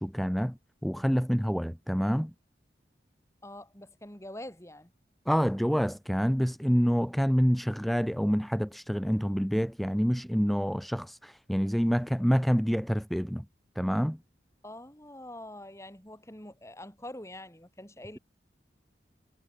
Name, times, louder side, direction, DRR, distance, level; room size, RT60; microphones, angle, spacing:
voice 1, 0.0-2.3 5.2-13.4 13.7-14.2, equal, ahead, 1.3 m, -27 dB
voice 2, 3.4-4.9 14.6-18.2, left 1 dB, 15° left, 4.3 m, -45 dB
head